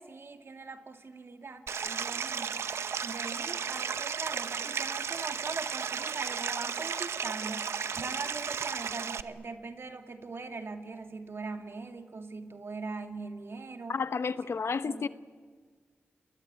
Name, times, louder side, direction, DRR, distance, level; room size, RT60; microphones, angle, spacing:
voice 1, 0.0-2.7 3.0-13.9 14.8-15.1, right 4 dB, 65° right, 2.4 m, -41 dB
Stream, 1.7-9.2, right 6 dB, 90° right, 0.8 m, -34 dB
voice 2, 13.9-15.1, left 5 dB, 75° left, 1.0 m, -31 dB
30.0 x 21.0 x 8.9 m
cardioid pair, 40°, 4 cm